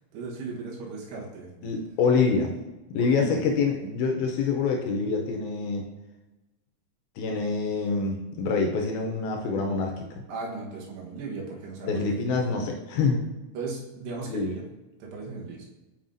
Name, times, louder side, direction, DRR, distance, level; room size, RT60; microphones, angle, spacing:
voice 1, 0.1-1.7 2.9-3.5 10.3-12.4 13.5-14.6 15.0-15.7, right 3 dB, 85° right, -2 dB, 3.3 m, -36 dB
voice 2, 1.6-2.5 2.9-5.9 7.2-10.1 11.8-13.2 14.3-14.5, left 4 dB, 80° left, 2 dB, 2.3 m, -26 dB
7.1 x 5.4 x 2.6 m, 1.1 s
omnidirectional pair, 4.7 m